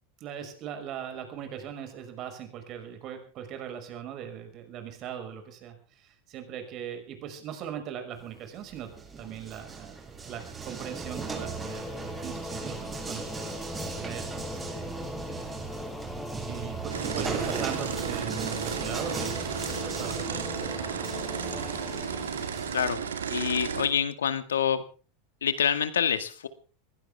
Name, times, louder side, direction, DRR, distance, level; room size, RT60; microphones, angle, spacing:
voice 1, 0.2-8.9 9.2-10.0 10.3-15.6 16.5-20.9 21.4-21.7, right 9 dB, 45° right, 7 dB, 5.8 m, -40 dB
sound 1, 8.2-22.9, right 5 dB, 20° right, 7.7 m, -38 dB
Singing / Musical instrument, 10.9-23.4, left 3 dB, 15° left, 2.6 m, -40 dB
sound 2, 16.9-23.9, right 7 dB, 80° right, 2.3 m, -34 dB
voice 2, 23.3-24.8 25.4-26.5, left 8 dB, 80° left, 12 dB, 2.0 m, -26 dB
22.0 x 16.5 x 3.6 m, 0.38 s
hypercardioid pair, 90°, 0 cm